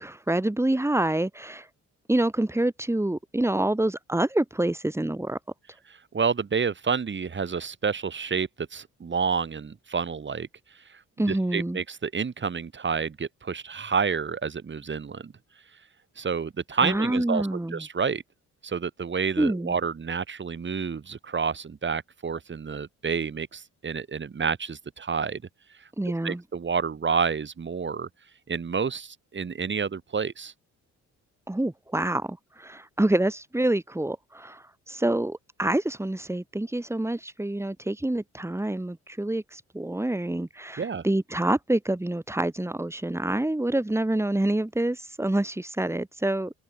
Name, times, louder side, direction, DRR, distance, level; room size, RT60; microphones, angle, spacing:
voice 1, 0.0-1.7 2.1-5.4 11.2-11.8 16.8-17.8 19.4-19.8 26.0-26.4 31.5-46.5, right 1 dB, 10° right, 3.3 m, -27 dB
voice 2, 5.9-10.5 10.9-11.0 11.3-15.3 16.2-18.2 18.6-25.4 26.2-28.1 28.5-30.5 40.8-41.0, right 6 dB, 40° right, 5.4 m, -29 dB
cardioid pair, 90°, 30 cm